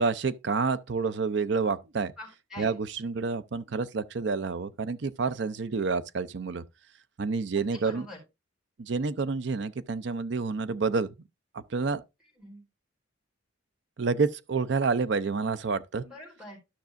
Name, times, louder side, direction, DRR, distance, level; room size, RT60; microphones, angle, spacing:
voice 1, 0.0-2.1 2.6-6.6 7.2-8.1 8.8-11.1 11.5-12.0 14.0-16.0, right 4 dB, 65° right, 0.5 m, -28 dB
voice 2, 2.2-2.7 7.5-8.2 12.4-12.6 16.0-16.6, left 2 dB, 5° right, 4.4 m, -45 dB
13.0 x 6.0 x 2.5 m
head